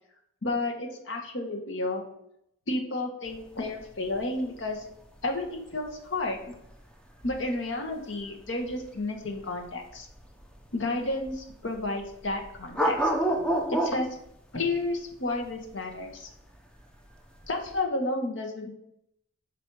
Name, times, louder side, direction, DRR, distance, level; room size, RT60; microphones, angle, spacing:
voice 1, 0.4-2.0 2.7-4.8 5.2-6.5 7.2-10.1 10.7-13.0 13.7-14.1 14.5-16.3 17.5-18.8, left 2 dB, 65° left, 3 dB, 1.0 m, -31 dB
sound 1, 3.3-17.8, right 1 dB, 5° left, 0.6 m, -32 dB
5.9 x 3.9 x 4.6 m, 0.78 s
head